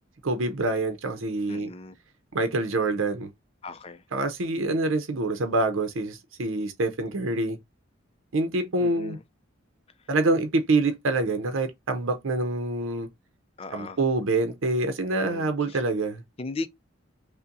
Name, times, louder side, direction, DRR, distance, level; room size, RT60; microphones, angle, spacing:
voice 1, 0.2-1.7 2.3-3.3 4.1-7.6 8.3-9.2 10.1-13.1 13.7-16.2, right 2 dB, 90° right, 0.7 m, -26 dB
voice 2, 1.5-1.9 3.6-4.0 8.8-9.2 13.6-14.0 15.1-15.8 16.4-16.7, left 3 dB, 30° left, 0.4 m, -37 dB
5.5 x 2.1 x 2.6 m
head